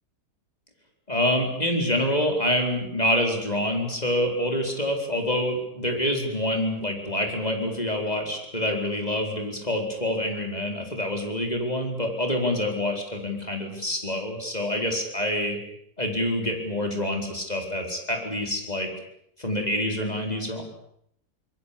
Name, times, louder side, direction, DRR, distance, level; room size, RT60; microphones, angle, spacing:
voice 1, 1.1-15.6 16.0-18.9 19.4-20.6, left 1 dB, 25° left, 2 dB, 4.6 m, -26 dB
25.5 x 21.5 x 8.5 m, 0.71 s
omnidirectional pair, 1.7 m